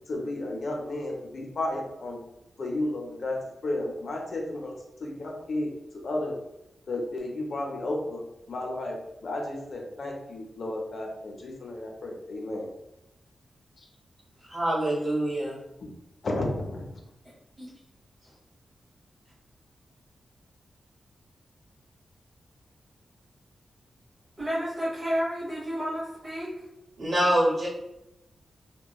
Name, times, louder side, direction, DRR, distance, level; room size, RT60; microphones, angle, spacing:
voice 1, 0.1-2.2 2.6-4.7 5.0-5.7 6.0-6.4 6.9-8.2 8.5-12.7 13.8-13.9 15.8-15.9 16.2-17.0, left 1 dB, 55° left, 0.5 m, -33 dB
voice 2, 14.5-15.6 27.0-27.7, right 1 dB, 60° right, 1.0 m, -25 dB
voice 3, 24.4-26.5, equal, 30° right, 0.8 m, -31 dB
2.9 x 2.2 x 2.3 m
wide cardioid pair, 140°, 0 cm